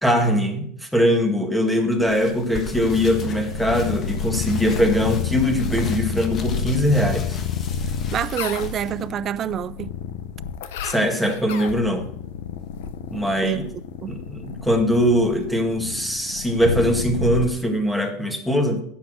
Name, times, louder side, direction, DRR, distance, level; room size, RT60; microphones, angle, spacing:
voice 1, 0.0-7.4 10.8-12.1 13.1-13.6 14.1-18.8, equal, ahead, 1.9 m, -21 dB
sound 1, 2.0-9.1, left 5 dB, 35° left, 1.4 m, -36 dB
sound 2, 2.8-17.5, left 6 dB, 85° left, 0.9 m, -30 dB
voice 2, 8.1-9.9 13.4-14.2, right 10 dB, 40° right, 0.5 m, -27 dB
10.5 x 7.2 x 6.3 m
supercardioid pair, 120°, 0 cm